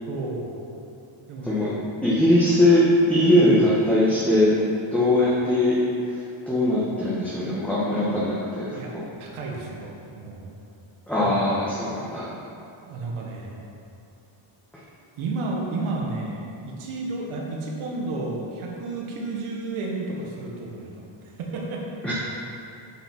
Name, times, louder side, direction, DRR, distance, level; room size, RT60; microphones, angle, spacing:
voice 1, 0.1-0.5 1.3-1.8 3.4-3.6 5.2-5.4 8.7-8.9 9.2-10.5 11.2-11.6 12.9-13.6 15.2-21.8, right 3 dB, 85° right, -2 dB, 1.7 m, -32 dB
voice 2, 1.4-1.7 2.0-2.8 3.1-4.6 4.9-5.8 6.5-9.0 11.1-12.3 22.0-22.1, left 1 dB, 5° left, -10 dB, 1.9 m, -21 dB
8.4 x 6.0 x 6.1 m, 2.7 s
cardioid pair, 100°, 48 cm